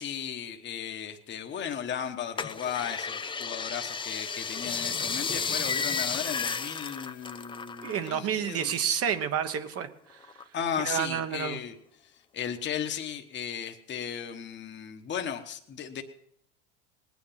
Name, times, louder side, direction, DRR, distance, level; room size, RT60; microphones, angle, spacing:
voice 1, 0.0-8.7 10.5-11.7 12.3-16.0, left 8 dB, 30° left, 5 dB, 1.3 m, -35 dB
sound 1, 2.4-8.2 8.5-9.8 10.2-11.1 11.6-11.7, left 5 dB, 15° left, 0.6 m, -33 dB
voice 2, 7.8-10.4 10.8-11.6, right 8 dB, 40° right, 9 dB, 1.2 m, -30 dB
19.0 x 9.4 x 5.8 m, 0.73 s
supercardioid pair, 100°, 36 cm